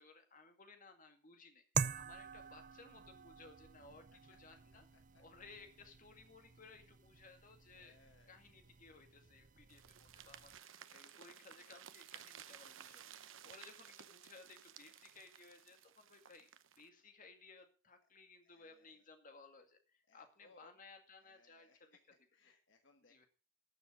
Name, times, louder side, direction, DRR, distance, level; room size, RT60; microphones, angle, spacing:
voice 1, 0.0-4.9 5.2-8.0 8.3-16.5 16.8-22.0 23.0-23.3, left 4 dB, 45° left, 6 dB, 2.1 m, -60 dB
sound 1, 1.7-10.6, right 6 dB, 40° right, 0.6 m, -46 dB
voice 2, 4.9-5.2 7.7-8.3 12.9-13.5 18.4-19.0 20.1-20.7 21.2-22.0 22.3-23.2, left 3 dB, 65° left, 6 dB, 1.3 m, -68 dB
sound 2, 9.7-16.9, right 9 dB, 80° right, 0.8 m, -56 dB
13.0 x 7.0 x 6.3 m, 0.37 s
head